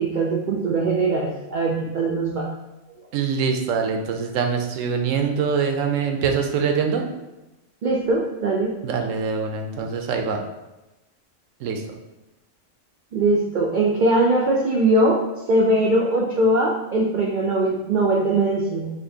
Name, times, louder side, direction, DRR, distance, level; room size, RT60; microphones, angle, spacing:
voice 1, 0.0-2.5 2.9-3.1 7.8-8.8 13.1-18.9, right 2 dB, 65° right, -3 dB, 0.5 m, -21 dB
voice 2, 3.1-7.1 8.8-10.4 11.6-11.8, right 6 dB, 80° right, 3 dB, 0.9 m, -24 dB
4.3 x 2.6 x 2.7 m, 1.0 s
omnidirectional pair, 1.3 m